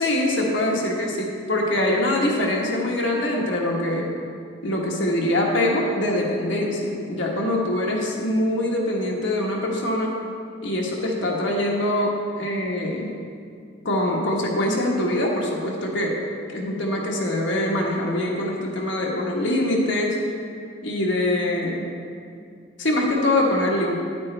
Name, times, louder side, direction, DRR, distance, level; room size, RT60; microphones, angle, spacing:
voice 1, 0.0-4.1 4.6-10.2 10.6-13.1 13.8-16.2 16.5-20.2 20.8-21.9 22.8-23.9, left 1 dB, 75° left, -2 dB, 1.4 m, -23 dB
9.7 x 9.1 x 3.3 m, 2.3 s
head